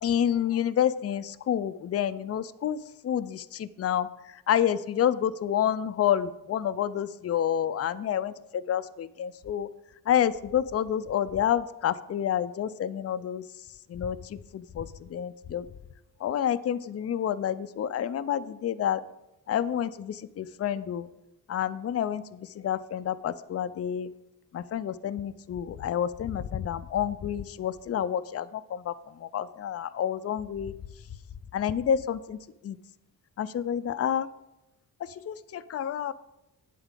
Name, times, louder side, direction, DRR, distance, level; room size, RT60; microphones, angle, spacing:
voice 1, 0.0-9.7 10.1-13.4 13.9-15.7 16.2-19.0 19.5-21.1 21.5-24.1 24.5-30.7 31.5-32.8 33.4-34.3 35.0-36.1, left 9 dB, 40° left, 13 dB, 0.5 m, -29 dB
9.3 x 8.0 x 3.8 m, 0.92 s
cardioid pair, 70°, 38 cm